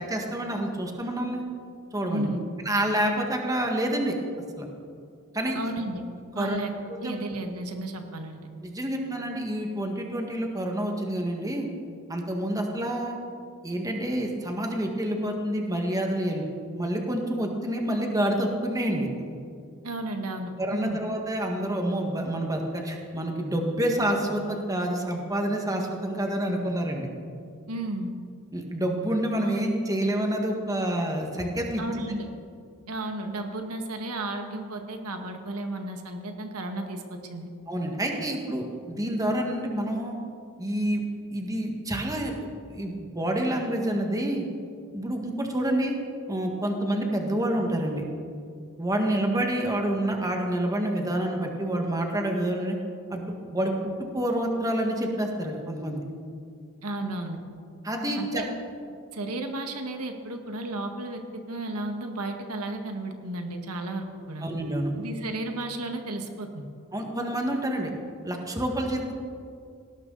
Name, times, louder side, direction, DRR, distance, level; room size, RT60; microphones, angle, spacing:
voice 1, 0.0-1.4 1.9-2.3 2.7-4.1 4.6-4.7 5.3-5.6 6.4-6.6 6.9-7.1 8.6-11.7 12.1-13.2 13.6-16.4 16.7-19.1 20.6-27.1 28.5-32.1 37.7-40.2 40.6-41.0 41.3-42.3 42.7-44.5 44.9-46.0 46.3-48.0 48.8-52.8 53.1-53.7 54.0-56.0 57.8-58.4 64.4-64.9 66.9-67.9 68.2-69.1, right 1 dB, 15° right, 2 dB, 1.8 m, -28 dB
voice 2, 2.1-2.4 5.6-6.0 6.3-6.7 7.0-8.4 19.8-21.0 27.7-28.1 31.8-32.3 32.9-37.5 56.8-57.4 58.2-58.5 59.1-61.2 61.5-64.5 65.0-66.7, right 2 dB, 90° right, 4 dB, 1.8 m, -33 dB
19.0 x 18.0 x 4.1 m, 2.3 s
head